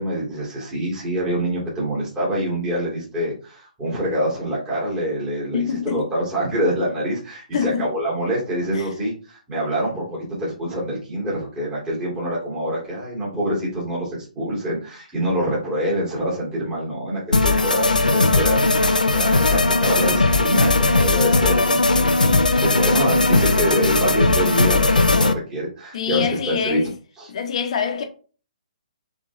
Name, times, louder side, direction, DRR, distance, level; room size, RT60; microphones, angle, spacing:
voice 1, 0.0-26.8 27.2-27.3, equal, 15° right, 2.4 m, -25 dB
voice 2, 5.5-6.1 7.5-7.9 8.7-8.9 25.9-26.9 27.3-28.0, left 7 dB, 50° left, 1.0 m, -25 dB
sound 1, 17.3-25.3, left 3 dB, 85° left, 0.6 m, -18 dB
4.9 x 3.6 x 2.7 m
figure-of-eight pair, 135°, 4 cm